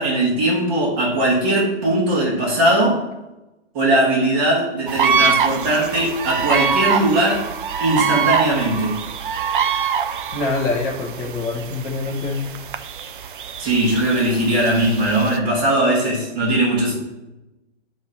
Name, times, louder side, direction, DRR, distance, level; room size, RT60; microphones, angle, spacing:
voice 1, 0.0-3.0 3.7-7.5 7.8-9.0 13.6-16.9, right 1 dB, 30° right, -7 dB, 1.9 m, -19 dB
sound 1, 4.9-15.4, right 6 dB, 50° right, 0.5 m, -24 dB
voice 2, 10.3-12.4, left 3 dB, 10° left, -1 dB, 0.5 m, -25 dB
9.6 x 3.2 x 4.1 m, 0.98 s
figure-of-eight pair, 135°, 35 cm